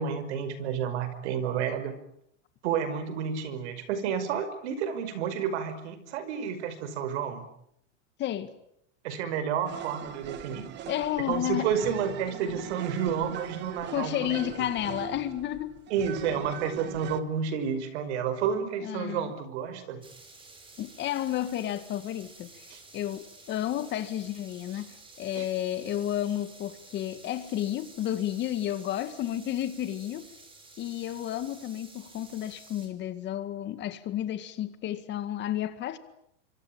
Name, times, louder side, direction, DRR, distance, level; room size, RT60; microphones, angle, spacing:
voice 1, 0.0-2.0 2.6-7.4 9.0-10.7 11.3-14.4 15.9-20.0 22.7-22.8 25.3-25.5, right 7 dB, 65° right, 5.5 m, -30 dB
voice 2, 8.2-8.5 10.9-11.7 13.9-15.7 18.8-19.3 20.8-22.7 22.9-30.3 30.8-36.0, left 12 dB, 30° left, 2.0 m, -32 dB
sound 1, 9.7-17.2, right 11 dB, 30° right, 1.6 m, -41 dB
sound 2, 20.0-32.9, right 3 dB, 15° right, 5.4 m, -52 dB
26.0 x 25.0 x 8.8 m
supercardioid pair, 150°, 36 cm